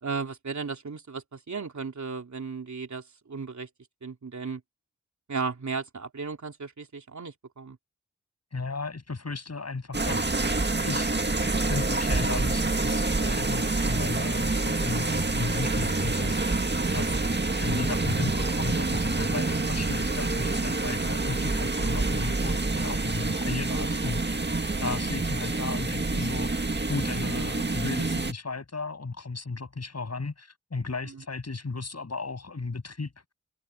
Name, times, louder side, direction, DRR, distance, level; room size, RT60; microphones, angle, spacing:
voice 1, 0.0-3.7 4.0-4.6 5.3-7.8 31.0-31.2, right 5 dB, 70° right, 3.4 m, -35 dB
voice 2, 8.5-10.3 10.8-11.2 11.6-16.6 16.9-17.2 17.6-24.4 24.8-33.1, left 3 dB, 60° left, 7.6 m, -35 dB
sound 1, 9.9-28.3, right 3 dB, 35° right, 1.9 m, -27 dB
cardioid pair, 40°, 30 cm